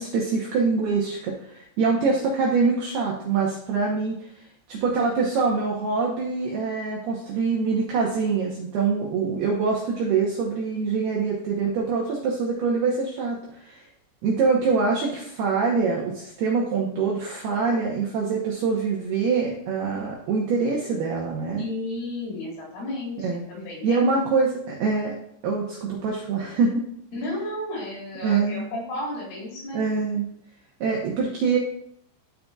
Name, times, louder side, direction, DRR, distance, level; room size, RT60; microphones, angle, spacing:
voice 1, 0.0-4.4 4.7-13.8 14.2-21.7 23.2-23.4 23.8-25.1 25.4-26.8 28.2-28.7 29.7-30.3 30.8-31.6, right 4 dB, 80° right, -2 dB, 2.3 m, -24 dB
voice 2, 21.6-24.2 27.1-30.0, left 1 dB, 75° left, -4 dB, 5.9 m, -33 dB
13.0 x 5.3 x 2.4 m, 0.70 s
omnidirectional pair, 5.9 m